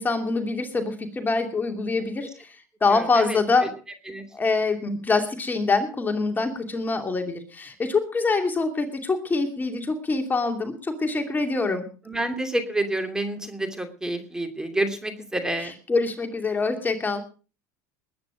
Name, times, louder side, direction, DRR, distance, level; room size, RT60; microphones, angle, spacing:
voice 1, 0.0-3.7 4.3-11.8 15.9-17.2, left 3 dB, 20° left, 5 dB, 2.7 m, -25 dB
voice 2, 2.9-3.7 4.1-4.2 12.1-15.7, right 1 dB, 5° right, 7 dB, 2.8 m, -29 dB
20.5 x 9.6 x 5.1 m, 0.37 s
supercardioid pair, 100°, 9 cm